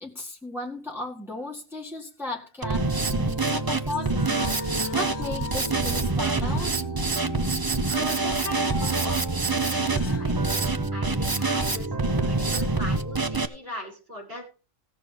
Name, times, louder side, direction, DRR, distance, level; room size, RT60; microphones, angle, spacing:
voice 1, 0.0-4.4 4.9-6.8, left 2 dB, ahead, 1.8 m, -35 dB
Drum kit, 2.6-13.4, right 3 dB, 25° right, 0.6 m, -26 dB
sound 1, 2.8-10.4 10.7-10.8 11.6-12.1, left 10 dB, 90° left, 1.3 m, -43 dB
voice 2, 7.9-10.6 10.9-14.4, equal, 50° right, 7.5 m, -39 dB
16.5 x 6.5 x 5.4 m
omnidirectional pair, 1.3 m